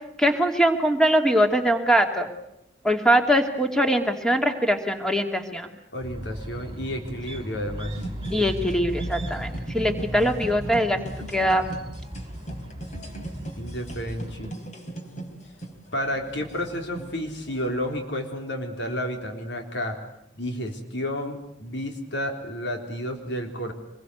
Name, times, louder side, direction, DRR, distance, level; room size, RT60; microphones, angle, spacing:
voice 1, 0.2-2.3 2.8-5.7 8.3-11.0 11.3-11.6, equal, 5° left, 4 dB, 2.5 m, -22 dB
voice 2, 5.9-8.1 13.6-14.5 15.9-20.0 20.3-23.7, equal, 70° left, 3 dB, 3.8 m, -31 dB
sound 1, 6.0-14.5, equal, 25° right, 2.7 m, -36 dB
sound 2, 8.0-18.0, right 1 dB, 40° left, 3.7 m, -39 dB
25.5 x 22.5 x 8.1 m, 0.83 s
head